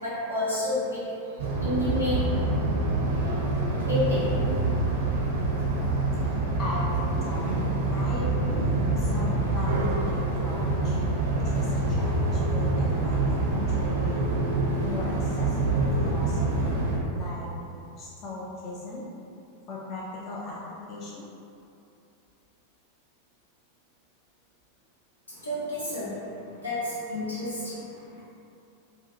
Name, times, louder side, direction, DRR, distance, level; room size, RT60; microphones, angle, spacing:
voice 1, 0.0-1.0 1.6-2.2 3.9-4.3 25.4-26.1 26.6-27.5, left 1 dB, 85° left, -11 dB, 0.9 m, -29 dB
sound 1, 1.4-17.0, right 2 dB, 60° right, 0.5 m, -26 dB
voice 2, 6.3-11.0 11.3-14.3 14.8-17.5 18.0-19.1 19.7-20.6 20.9-21.3, left 2 dB, 35° left, -5 dB, 0.4 m, -38 dB
2.6 x 2.2 x 2.6 m, 2.7 s
figure-of-eight pair, 90°, 0 cm